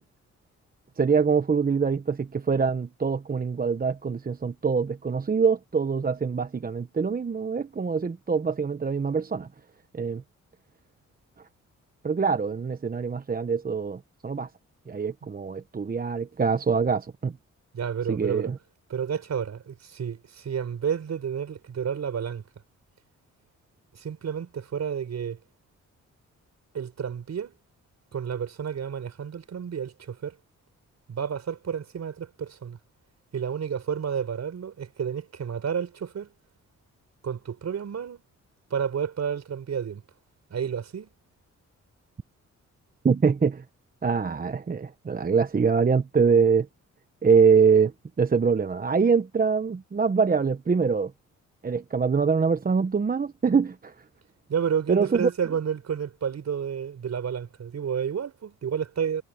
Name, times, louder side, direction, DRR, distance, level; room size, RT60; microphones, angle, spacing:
voice 1, 1.0-9.5 9.9-10.2 12.0-14.5 14.9-17.3 18.1-18.6 43.0-43.6 44.0-46.7 47.2-47.9 48.2-51.1 51.6-53.9 54.9-55.3, right 5 dB, 30° right, 0.9 m, -24 dB
voice 2, 17.7-18.5 18.9-22.4 23.9-25.4 26.7-27.5 28.1-30.4 31.1-32.8 33.3-36.3 37.2-38.2 38.7-40.0 40.5-41.1 54.5-59.2, right 7 dB, 60° right, 4.8 m, -30 dB
cardioid pair, 85°, 30 cm